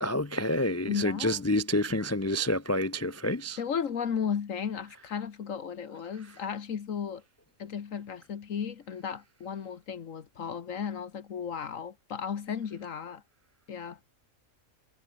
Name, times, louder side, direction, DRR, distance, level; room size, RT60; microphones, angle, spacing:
voice 1, 0.0-3.6, left 1 dB, 20° left, 0.4 m, -28 dB
voice 2, 0.9-1.4 3.6-7.2 7.6-13.2 13.7-14.0, left 7 dB, 80° left, 1.7 m, -34 dB
omnidirectional pair, 1.4 m